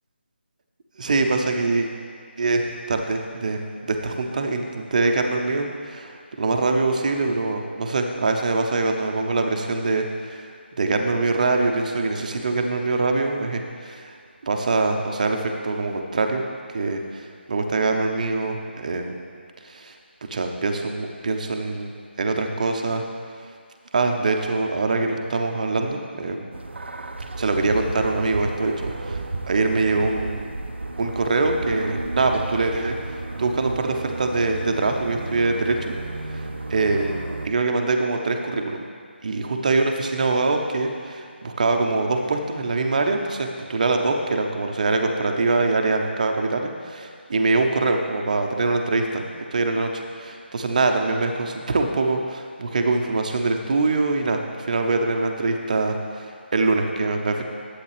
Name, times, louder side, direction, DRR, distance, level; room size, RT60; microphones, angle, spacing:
voice 1, 1.0-1.9 2.4-10.5 10.8-14.2 14.4-16.4 16.7-19.2 19.6-20.0 20.3-21.9 22.2-23.0 23.9-26.5 27.4-30.5 31.0-33.0 33.4-35.9 36.7-37.2 37.4-38.8 39.2-49.2 49.5-57.4, right 3 dB, 40° right, 4 dB, 0.8 m, -24 dB
sound 1, 26.5-37.5, right 2 dB, 70° right, 0.6 m, -33 dB
10.5 x 8.2 x 3.4 m, 2.2 s
figure-of-eight pair, 155°, 6 cm